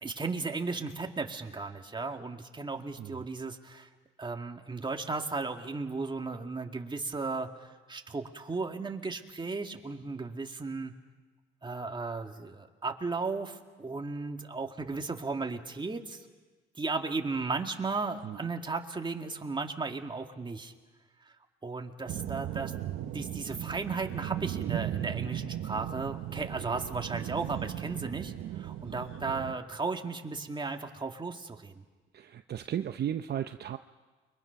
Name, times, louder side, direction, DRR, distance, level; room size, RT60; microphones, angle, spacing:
voice 1, 0.0-3.9 4.2-10.9 11.6-16.2 16.8-20.7 21.6-22.7 23.1-31.8, right 4 dB, 25° right, 4 dB, 2.1 m, -35 dB
sound 1, 22.1-29.6, right 12 dB, 85° right, 1.2 m, -37 dB
voice 2, 32.1-33.8, right 10 dB, 55° right, 8 dB, 0.7 m, -35 dB
29.5 x 23.5 x 5.9 m, 1.3 s
cardioid pair, 90°, 20 cm